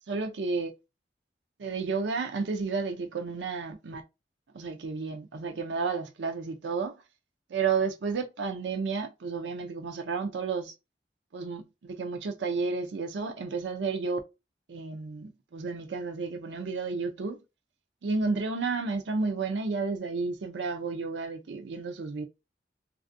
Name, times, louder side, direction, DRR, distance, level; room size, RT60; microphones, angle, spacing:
voice 1, 0.1-0.7 1.6-4.0 4.5-7.0 7.5-10.7 11.3-14.2 14.7-17.4 18.0-22.2, right 4 dB, 85° right, 0.5 m, -32 dB
3.3 x 2.4 x 2.5 m
head